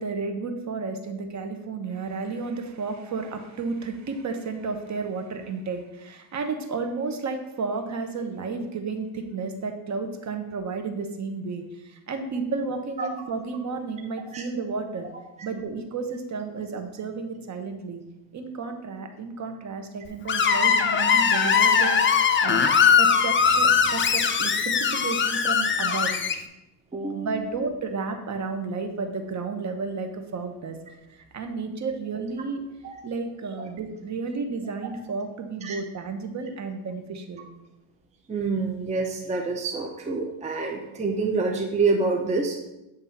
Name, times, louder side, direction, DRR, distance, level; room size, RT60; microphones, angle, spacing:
voice 1, 0.0-15.1 15.4-18.0 18.3-22.7 23.0-26.1 27.1-30.8 31.1-32.6 33.0-37.5, right 4 dB, 40° right, 6 dB, 1.0 m, -32 dB
Screech, 20.3-26.3, left 6 dB, 25° left, 0.6 m, -21 dB
voice 2, 26.9-27.4 32.8-32.9 35.6-35.8 38.3-42.6, right 3 dB, 15° right, 2 dB, 0.7 m, -27 dB
8.3 x 3.6 x 5.7 m, 0.94 s
cardioid pair, 120°, 45 cm